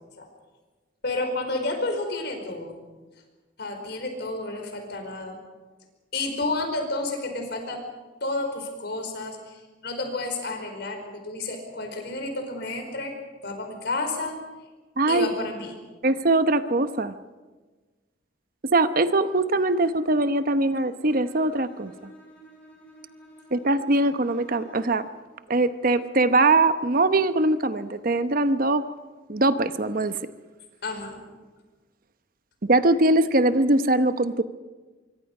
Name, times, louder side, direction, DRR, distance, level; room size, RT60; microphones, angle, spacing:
voice 1, 1.0-2.8 3.6-5.4 6.1-7.8 8.2-13.1 13.4-14.4 15.1-15.7 30.8-31.2, left 2 dB, 65° left, 5 dB, 4.9 m, -31 dB
voice 2, 15.0-15.3 16.0-17.1 18.7-22.1 23.5-25.1 25.5-28.8 29.3-30.2 32.6-34.4, right 2 dB, 50° right, 11 dB, 0.9 m, -22 dB
Bowed string instrument, 21.1-25.2, right 2 dB, 10° left, 7.7 m, -50 dB
25.5 x 23.5 x 5.5 m, 1.3 s
head